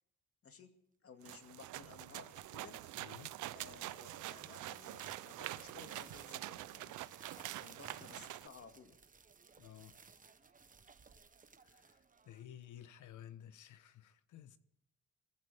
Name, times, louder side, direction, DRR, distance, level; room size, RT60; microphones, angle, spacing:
voice 1, 1.0-2.8 3.5-7.0 7.6-9.0, left 5 dB, 50° left, 2.3 m, -57 dB
sound 1, 1.2-8.5, right 15 dB, 80° right, 0.6 m, -46 dB
sound 2, 2.1-7.8, left 3 dB, 20° left, 1.6 m, -70 dB
sound 3, 2.4-12.8, right 5 dB, 25° right, 1.0 m, -61 dB
voice 2, 3.0-3.3 9.6-10.0 11.6-12.0 12.3-14.6, left 11 dB, 75° left, 1.1 m, -54 dB
24.0 x 15.0 x 3.6 m
cardioid pair, 90°, 30 cm